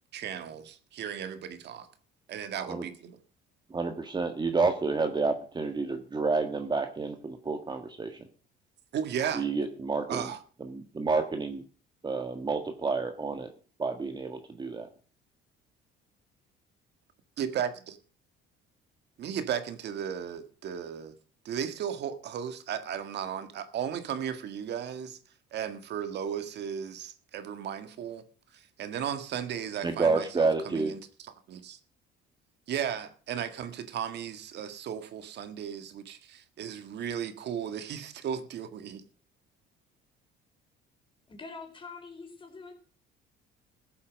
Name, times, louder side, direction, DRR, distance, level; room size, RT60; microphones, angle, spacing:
voice 1, 0.1-1.9 2.3-3.2 8.9-9.5 10.1-10.4 17.4-17.9 19.2-21.2 21.4-25.2 25.5-28.3 28.5-31.8 32.7-39.0, right 8 dB, 60° right, 9 dB, 1.8 m, -35 dB
voice 2, 3.7-8.2 9.3-10.2 10.6-11.6 12.0-13.5 13.8-14.9 29.8-30.9, right 4 dB, 20° right, 6 dB, 1.6 m, -29 dB
voice 3, 41.3-42.7, left 4 dB, 25° left, 2 dB, 4.7 m, -44 dB
15.5 x 8.4 x 6.3 m, 0.42 s
cardioid pair, 110°, 20 cm